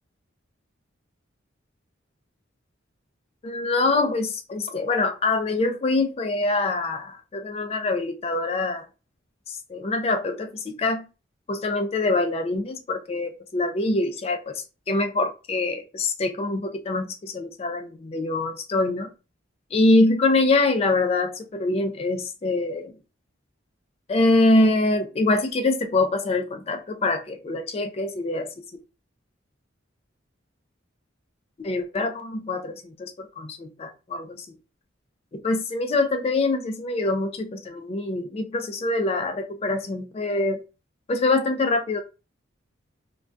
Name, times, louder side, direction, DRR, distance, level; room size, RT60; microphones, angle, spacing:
voice 1, 3.4-8.9 9.5-11.0 11.5-19.1 19.7-22.9 24.1-28.5 31.6-34.5 35.3-40.6 41.1-42.0, left 2 dB, 30° left, 0.3 m, -24 dB
2.2 x 2.2 x 2.5 m
head